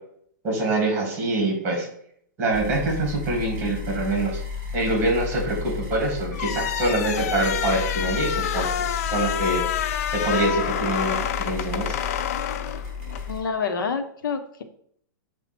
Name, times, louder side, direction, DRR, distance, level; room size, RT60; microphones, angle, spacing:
voice 1, 0.4-1.9 2.4-4.4 4.7-8.7 9.0-9.6 10.1-12.0, right 2 dB, 20° right, 0 dB, 2.4 m, -25 dB
sound 1, 2.5-13.4, left 5 dB, 5° right, 2.8 m, -33 dB
sound 2, 6.3-13.3, left 10 dB, 45° left, 0.4 m, -28 dB
voice 2, 13.3-14.6, left 5 dB, 80° left, 7 dB, 0.9 m, -27 dB
6.9 x 3.0 x 5.9 m, 0.66 s
hypercardioid pair, 170°, 11 cm